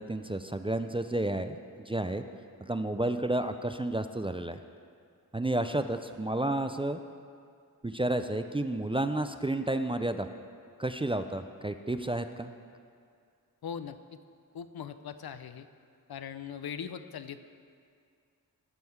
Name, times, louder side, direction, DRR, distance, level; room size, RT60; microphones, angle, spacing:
voice 1, 0.0-2.2 2.6-4.6 5.3-7.0 7.8-10.3 10.8-12.5, right 1 dB, 15° right, 8 dB, 0.3 m, -31 dB
voice 2, 13.6-14.0 14.5-15.7 16.1-17.5, left 7 dB, 80° left, 11 dB, 0.5 m, -40 dB
14.0 x 5.4 x 4.6 m, 2.2 s
wide cardioid pair, 65°, 36 cm